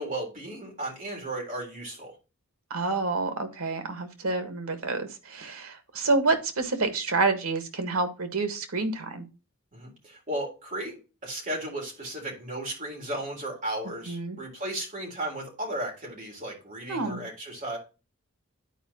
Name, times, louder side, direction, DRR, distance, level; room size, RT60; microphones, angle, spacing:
voice 1, 0.0-2.1 9.7-11.0 11.2-17.8, right 1 dB, 40° right, 3.8 m, -35 dB
voice 2, 2.7-9.3 14.1-14.4 16.9-17.2, right 3 dB, 85° right, 1.6 m, -28 dB
10.5 x 4.7 x 4.2 m
head